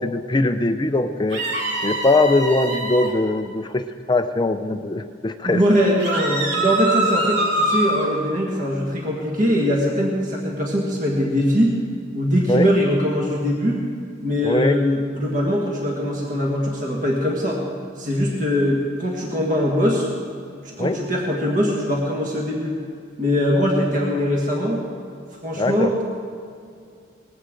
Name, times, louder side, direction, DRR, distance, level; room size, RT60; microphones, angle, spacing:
voice 1, 0.0-1.4 1.8-5.6 12.5-12.7 14.4-14.8 20.8-21.0 25.6-25.9, left 2 dB, 20° left, 9 dB, 0.4 m, -21 dB
sound 1, 1.3-3.1 6.0-8.1, right 1 dB, 60° right, 2.3 m, -24 dB
voice 2, 5.4-11.8 12.1-13.8 14.2-17.6 18.0-20.1 20.8-22.7 23.2-24.8 25.4-26.0, equal, 40° right, -2 dB, 1.6 m, -21 dB
19.5 x 15.5 x 3.8 m, 2.4 s
head